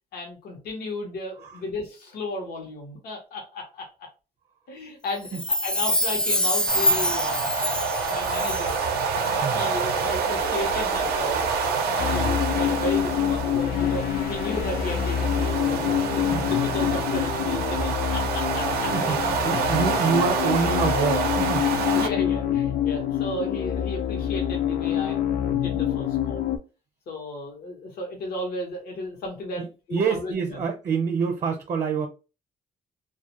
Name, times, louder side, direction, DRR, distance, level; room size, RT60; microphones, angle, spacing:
voice 1, 0.1-4.1 4.7-8.8 9.1-11.4 11.9-18.9 21.6-26.5 27.1-29.6 29.9-30.6, left 1 dB, 85° left, 0 dB, 0.8 m, -34 dB
Chime, 5.3-8.9 9.2-9.3, left 1 dB, 5° left, 0.3 m, -25 dB
sound 1, 6.7-22.1, right 5 dB, 90° right, 0.4 m, -27 dB
sound 2, 12.0-26.6, left 10 dB, 70° left, 0.4 m, -26 dB
voice 2, 18.9-21.7 29.6-32.1, right 6 dB, 45° right, 4 dB, 0.6 m, -27 dB
2.2 x 2.1 x 2.8 m, 0.31 s
cardioid pair, 100°, 16 cm